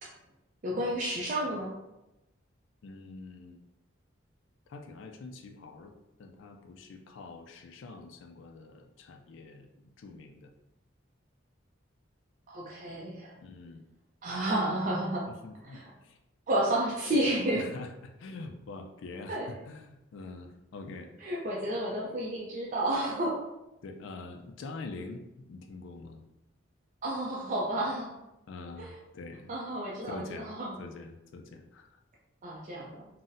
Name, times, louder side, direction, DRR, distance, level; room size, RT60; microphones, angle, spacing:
voice 1, 0.6-1.7 12.5-13.3 14.2-15.3 15.7-15.8 16.5-17.6 19.3-19.5 21.2-23.4 27.0-28.1 28.8-29.0 29.5-30.8 32.4-33.1, right 1 dB, 40° right, -5 dB, 0.4 m, -31 dB
voice 2, 2.8-3.6 4.7-5.9 6.2-10.5 13.4-13.8 15.3-16.2 17.5-21.1 23.8-26.2 28.5-29.5 30.1-30.5 30.8-31.9, left 3 dB, 70° left, 4 dB, 0.3 m, -45 dB
3.9 x 2.1 x 2.6 m, 0.94 s
head